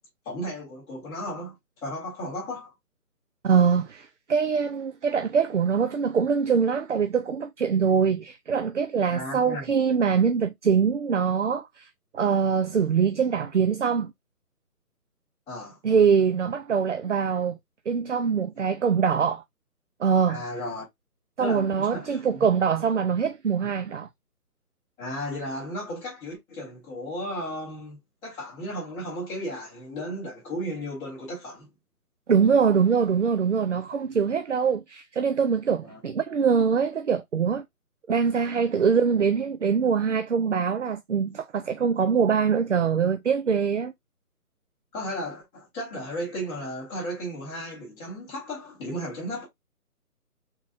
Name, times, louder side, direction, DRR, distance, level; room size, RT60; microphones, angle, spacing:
voice 1, 0.2-1.5 1.8-2.7 9.1-9.6 15.5-15.8 20.3-20.8 21.4-22.5 25.0-31.7 35.8-36.0 44.9-49.4, equal, 5° left, 1.3 m, -34 dB
voice 2, 3.4-11.9 12.1-14.1 15.8-17.5 17.9-19.4 20.0-20.4 21.4-24.1 32.3-37.6 38.1-43.9, right 6 dB, 50° right, 0.4 m, -23 dB
4.0 x 3.9 x 2.5 m
figure-of-eight pair, 155°, 46 cm